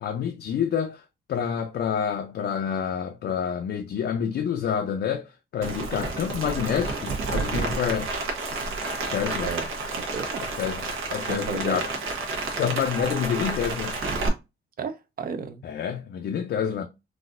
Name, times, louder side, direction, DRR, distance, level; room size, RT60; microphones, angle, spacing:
voice 1, 0.0-8.1 9.1-9.5 10.6-11.9 12.6-14.0 15.6-16.8, left 8 dB, 55° left, 0.5 m, -28 dB
Rain, 5.6-14.3, right 3 dB, 75° right, 1.1 m, -30 dB
voice 2, 9.9-10.4 11.3-11.8 14.8-15.6, right 6 dB, 45° right, 0.5 m, -33 dB
4.0 x 2.5 x 2.5 m
cardioid pair, 130°, 21 cm